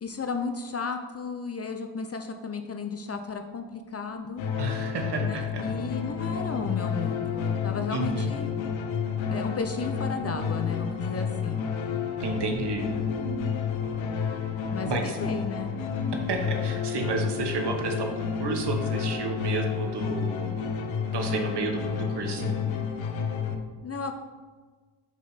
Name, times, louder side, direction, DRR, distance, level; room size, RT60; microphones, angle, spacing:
voice 1, 0.0-4.4 5.2-8.6 9.3-11.7 14.7-15.7 23.8-24.1, left 5 dB, 30° left, 6 dB, 0.6 m, -34 dB
sound 1, 3.5-22.7, right 1 dB, 75° right, 0.8 m, -46 dB
sound 2, 4.4-23.6, left 6 dB, 70° left, 0.8 m, -30 dB
voice 2, 4.6-5.6 7.9-8.3 12.2-12.9 14.8-15.2 16.3-20.5 21.1-22.6, right 4 dB, 55° right, 3 dB, 1.2 m, -31 dB
5.2 x 5.1 x 4.0 m, 1.4 s
supercardioid pair, 50°, 49 cm